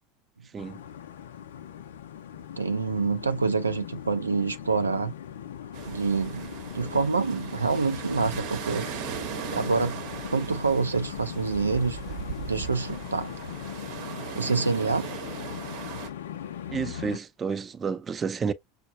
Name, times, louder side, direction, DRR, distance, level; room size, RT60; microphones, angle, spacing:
sound 1, 0.6-17.2, left 9 dB, 75° left, 0.5 m, -39 dB
voice 1, 2.6-5.1 5.8-8.9 9.5-10.0 10.3-12.0 12.4-13.3 14.4-15.1, right 4 dB, 90° right, 0.4 m, -26 dB
sound 2, 5.7-16.1, right 9 dB, 60° right, 0.8 m, -38 dB
voice 2, 16.7-18.5, right 6 dB, 25° right, 0.5 m, -30 dB
6.2 x 2.1 x 2.6 m
figure-of-eight pair, 80°, 0 cm